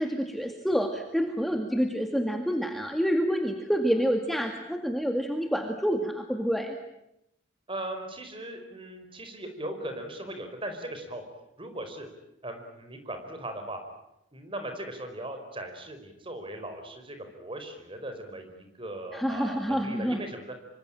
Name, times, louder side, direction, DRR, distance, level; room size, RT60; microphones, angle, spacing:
voice 1, 0.0-6.8 19.1-20.2, equal, ahead, 4 dB, 2.0 m, -28 dB
voice 2, 7.7-11.2 11.6-12.1 12.4-13.8 14.3-20.5, right 1 dB, 25° right, 6 dB, 4.9 m, -38 dB
26.0 x 25.0 x 9.0 m, 0.83 s
head